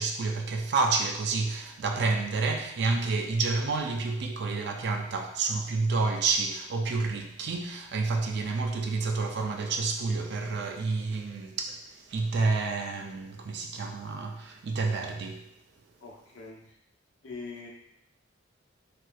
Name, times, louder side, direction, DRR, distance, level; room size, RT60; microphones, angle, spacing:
voice 1, 0.0-15.4, right 3 dB, 55° right, 0.4 m, -29 dB
voice 2, 16.0-16.6 17.2-17.7, left 4 dB, 75° left, 0.7 m, -42 dB
3.0 x 3.0 x 2.3 m
head